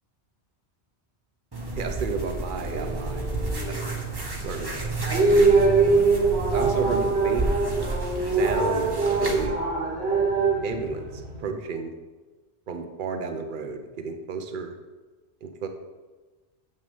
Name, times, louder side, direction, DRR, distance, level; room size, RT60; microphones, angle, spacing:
sound 1, 1.5-9.5, right 2 dB, 20° right, 1.2 m, -31 dB
voice 1, 1.7-3.9 4.4-4.9 5.6-6.0 6.5-7.5 8.3-9.6 10.6-11.9 12.7-14.7 15.4-15.7, right 5 dB, 50° right, 6 dB, 1.0 m, -32 dB
sound 2, 2.6-11.4, right 3 dB, 70° right, 1.8 m, -23 dB
6.9 x 6.5 x 7.1 m, 1.3 s
omnidirectional pair, 1.1 m